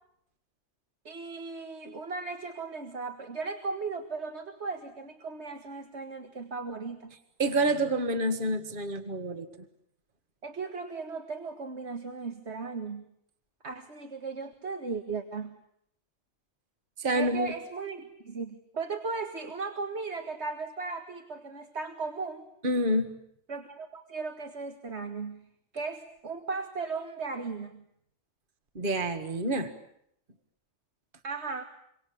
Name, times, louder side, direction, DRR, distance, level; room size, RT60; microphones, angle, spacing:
voice 1, 1.1-7.1 10.4-13.1 13.6-15.5 17.1-22.5 23.5-25.4 25.7-27.8 31.2-31.6, right 4 dB, 70° right, 6 dB, 2.1 m, -36 dB
voice 2, 7.4-9.5 17.0-17.5 22.6-23.1 28.8-29.7, right 1 dB, 45° right, 8 dB, 1.9 m, -27 dB
28.0 x 24.5 x 8.5 m, 0.74 s
omnidirectional pair, 1.2 m